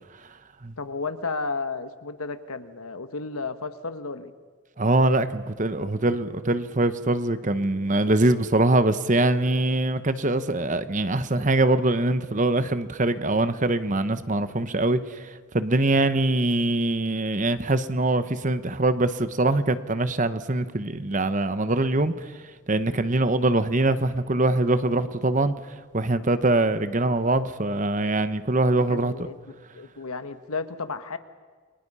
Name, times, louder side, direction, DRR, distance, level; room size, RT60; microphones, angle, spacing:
voice 1, 0.8-4.3 28.9-29.4 29.7-31.2, left 4 dB, 80° left, 10 dB, 1.5 m, -33 dB
voice 2, 4.8-15.3 15.5-22.3 22.7-25.5 25.9-29.1, right 2 dB, 35° right, 12 dB, 1.0 m, -23 dB
30.0 x 23.5 x 5.6 m, 1.5 s
head